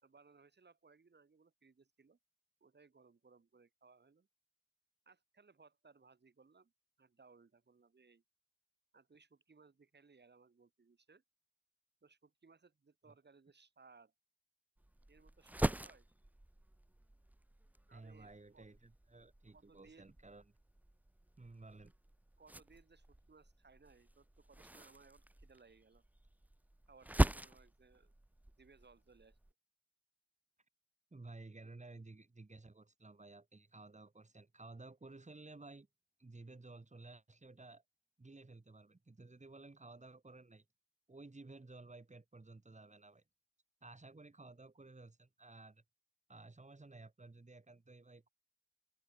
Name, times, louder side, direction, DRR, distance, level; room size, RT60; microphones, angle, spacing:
voice 1, 0.0-2.2 2.6-4.3 5.0-6.7 7.0-8.2 8.9-11.2 12.0-14.1 15.1-16.1 17.9-18.7 19.5-20.1 22.4-26.0 26.9-28.1 28.6-29.4, right 4 dB, 60° right, 3.3 m, -64 dB
sound 1, 14.8-29.5, right 1 dB, 10° right, 0.5 m, -42 dB
voice 2, 17.9-20.5 21.4-21.9 31.1-35.9 36.2-37.8 38.2-40.6 41.1-43.2 43.8-45.8 46.3-48.3, right 3 dB, 35° right, 5.7 m, -55 dB
wide cardioid pair, 80°, 20 cm